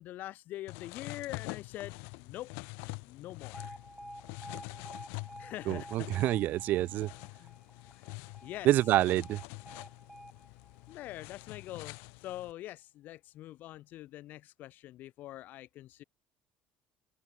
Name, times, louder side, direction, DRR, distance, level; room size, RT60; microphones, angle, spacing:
voice 1, 0.0-2.5 3.0-3.8 5.4-6.1 7.4-7.6 7.9-8.7 10.9-16.0, left 15 dB, 55° left, 2.4 m, -44 dB
sound 1, 0.7-12.5, left 34 dB, 80° left, 1.9 m, -46 dB
Alarm, 3.5-11.6, right 1 dB, 5° right, 1.4 m, -51 dB
voice 2, 5.7-7.1 8.6-9.4, right 14 dB, 55° right, 0.7 m, -27 dB
open air
cardioid pair, 125°, 4 cm